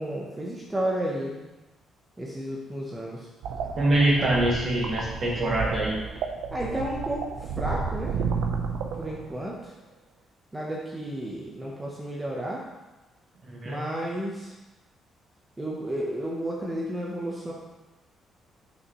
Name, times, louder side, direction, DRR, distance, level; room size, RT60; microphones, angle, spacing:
voice 1, 0.0-1.3 2.2-3.3 6.5-8.2 9.0-9.7 10.5-12.7 13.6-14.5 15.6-17.5, right 1 dB, 10° right, -4 dB, 0.9 m, -32 dB
sound 1, 3.4-9.5, right 5 dB, 80° right, 0.7 m, -32 dB
voice 2, 3.8-6.0 13.4-13.8, right 1 dB, 35° right, -3 dB, 1.4 m, -24 dB
8.5 x 6.4 x 3.1 m, 1.1 s
cardioid pair, 170°, 0 cm